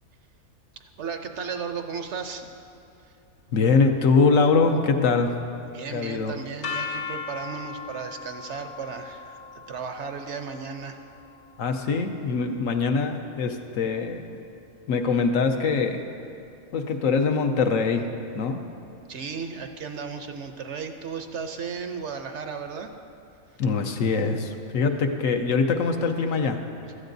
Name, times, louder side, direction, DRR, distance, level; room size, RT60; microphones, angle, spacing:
voice 1, 1.0-2.5 3.0-3.2 5.7-9.4 9.7-11.0 19.1-22.9, right 5 dB, 65° right, 6 dB, 0.9 m, -35 dB
voice 2, 3.5-5.3 5.9-6.3 11.6-14.4 14.9-16.0 16.7-18.1 18.3-18.6 23.6-26.6, left 4 dB, 70° left, 5 dB, 1.1 m, -23 dB
sound 1, 6.6-12.6, left 5 dB, 85° left, 1.6 m, -38 dB
16.0 x 13.0 x 2.6 m, 2.7 s
omnidirectional pair, 1.5 m